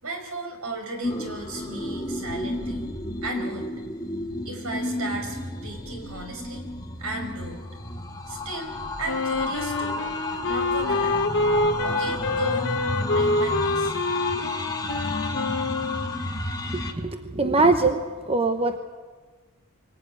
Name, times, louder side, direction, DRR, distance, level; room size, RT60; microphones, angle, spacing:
voice 1, 0.0-2.9 3.2-3.7 4.5-6.7 7.0-7.6 8.3-8.7 9.0-10.0 10.4-11.2 11.8-12.8 13.1-13.9, right 2 dB, 75° right, 4 dB, 5.3 m, -35 dB
sound 1, 1.0-16.9, left 2 dB, 20° left, 1.8 m, -31 dB
Wind instrument woodwind instrument, 9.0-16.2, left 2 dB, 60° left, 1.4 m, -26 dB
voice 2, 16.7-18.0 18.3-18.8, right 3 dB, 25° right, 7 dB, 1.0 m, -22 dB
24.5 x 18.0 x 9.4 m, 1.4 s
head